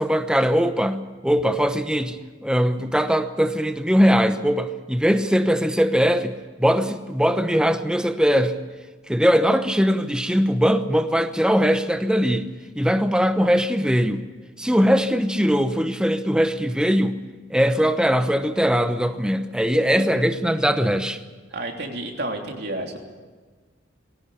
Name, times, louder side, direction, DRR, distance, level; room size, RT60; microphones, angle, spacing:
voice 1, 0.0-8.5 9.1-12.5 12.8-14.2 14.6-17.2 17.5-21.2, equal, 5° right, 8 dB, 0.9 m, -21 dB
voice 2, 21.5-23.0, right 2 dB, 55° right, 2 dB, 3.2 m, -30 dB
20.5 x 17.5 x 8.4 m, 1.4 s
head